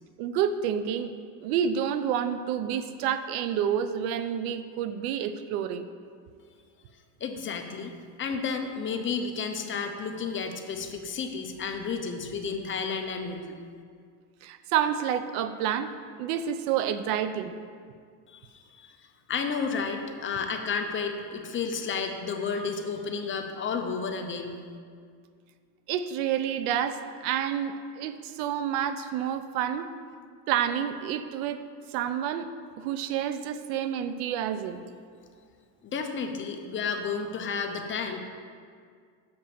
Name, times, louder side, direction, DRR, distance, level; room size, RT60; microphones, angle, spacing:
voice 1, 0.2-1.1 1.4-5.9 14.4-15.9 16.2-17.5 25.9-29.9 30.5-31.6 31.9-32.5 32.8-34.8, right 9 dB, 80° right, 11 dB, 0.7 m, -29 dB
voice 2, 7.2-13.6 18.3-19.0 19.3-24.6 35.8-38.2, left 5 dB, 30° left, 4 dB, 0.7 m, -32 dB
7.0 x 5.2 x 6.8 m, 2.1 s
cardioid pair, 130°, 42 cm